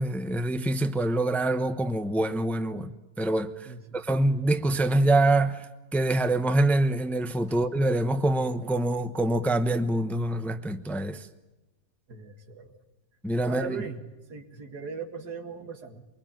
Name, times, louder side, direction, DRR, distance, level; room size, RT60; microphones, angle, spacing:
voice 1, 0.0-3.5 3.9-5.6 5.9-11.2 13.2-13.8, right 2 dB, ahead, 0.8 m, -25 dB
voice 2, 3.6-4.0 7.5-7.6 12.1-12.8 13.4-14.0 14.3-16.0, right 5 dB, 85° right, 2.5 m, -39 dB
23.5 x 23.5 x 9.2 m
omnidirectional pair, 1.7 m